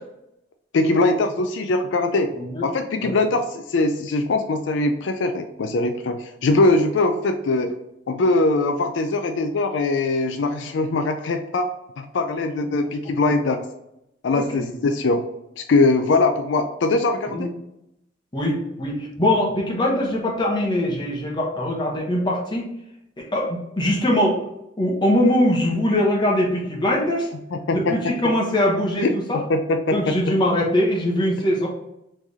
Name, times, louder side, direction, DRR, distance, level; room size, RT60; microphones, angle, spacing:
voice 1, 0.7-2.3 2.6-7.7 8.1-11.7 12.0-13.7 14.2-15.2 15.6-17.5 27.5-27.9 29.0-29.1 29.5-30.1, left 2 dB, 80° left, 6 dB, 0.4 m, -21 dB
voice 2, 2.3-2.7 3.0-3.1 14.3-14.7 17.3-17.5 18.3-22.7 23.2-24.4 24.8-27.3 27.7-29.4 29.9-31.7, left 1 dB, 25° left, -2 dB, 1.0 m, -22 dB
3.5 x 3.3 x 4.0 m, 0.84 s
head